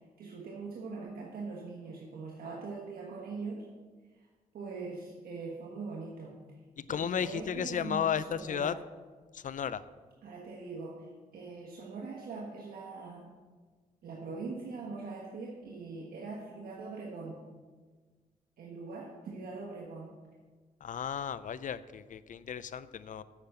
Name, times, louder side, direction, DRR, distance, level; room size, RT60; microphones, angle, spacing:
voice 1, 0.2-3.6 4.5-6.3 6.9-8.8 10.2-11.1 11.3-13.3 14.0-17.4 18.6-20.1, right 4 dB, 85° right, -3 dB, 1.4 m, -42 dB
voice 2, 6.8-8.7 9.3-9.8 20.8-23.2, left 8 dB, 60° left, 15 dB, 0.5 m, -34 dB
8.9 x 5.9 x 7.7 m, 1.4 s
cardioid pair, 85°, 15 cm